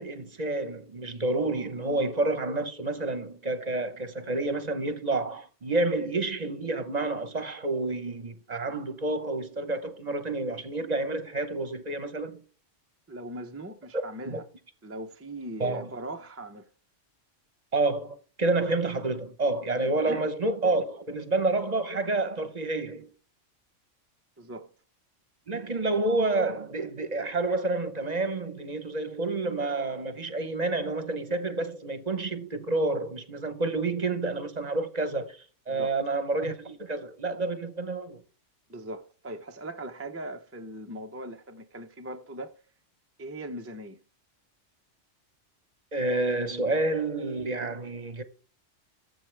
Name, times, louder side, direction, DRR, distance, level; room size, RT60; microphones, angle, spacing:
voice 1, 0.0-12.4 13.9-14.4 15.6-15.9 17.7-23.1 25.5-38.2 45.9-48.2, right 2 dB, 35° right, 0.9 m, -29 dB
voice 2, 13.1-14.4 14.8-16.7 19.8-20.3 24.4-24.7 35.7-36.0 38.7-42.5 43.2-44.0, right 1 dB, 15° right, 0.5 m, -40 dB
14.0 x 7.8 x 3.3 m
omnidirectional pair, 1.3 m